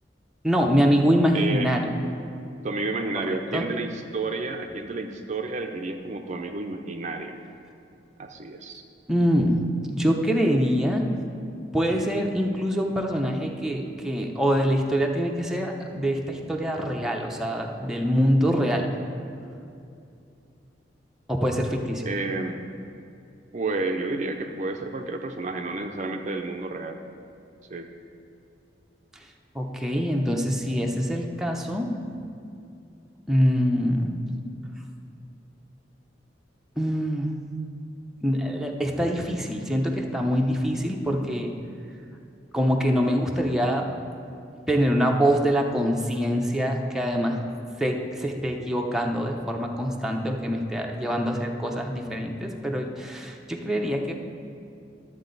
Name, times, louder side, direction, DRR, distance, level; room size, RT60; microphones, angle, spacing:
voice 1, 0.4-1.8 3.2-3.6 9.1-9.6 9.9-11.0 11.7-18.9 21.3-22.0 29.5-31.9 33.3-34.1 36.8-37.4 38.2-41.5 42.5-44.0 44.7-47.4 47.8-54.1, equal, 5° right, 0 dB, 0.7 m, -24 dB
voice 2, 1.3-1.8 2.6-7.4 8.2-8.7 22.0-22.7 23.5-27.0 27.7-27.9, right 3 dB, 40° right, 5 dB, 0.5 m, -30 dB
12.0 x 7.5 x 4.0 m, 2.6 s
head